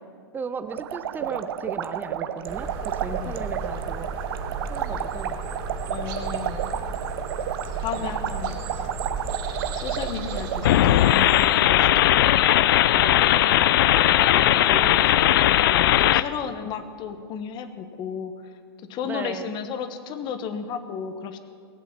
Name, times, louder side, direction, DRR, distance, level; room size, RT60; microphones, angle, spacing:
voice 1, 0.3-4.2 4.7-5.5 8.0-8.2 12.9-15.5 15.9-16.2 19.0-19.5, right 5 dB, 15° right, 12 dB, 0.7 m, -37 dB
sound 1, 0.7-10.7, right 9 dB, 65° right, 0.8 m, -32 dB
sound 2, 2.5-11.5, right 4 dB, 45° right, 2.8 m, -33 dB
voice 2, 5.9-6.6 7.8-8.6 9.7-12.1 15.7-18.3 18.9-21.4, left 7 dB, 35° left, 10 dB, 1.3 m, -33 dB
sound 3, 10.6-16.2, left 13 dB, 60° left, 0.5 m, -18 dB
19.0 x 8.3 x 7.5 m, 2.2 s
hypercardioid pair, 115°, 13 cm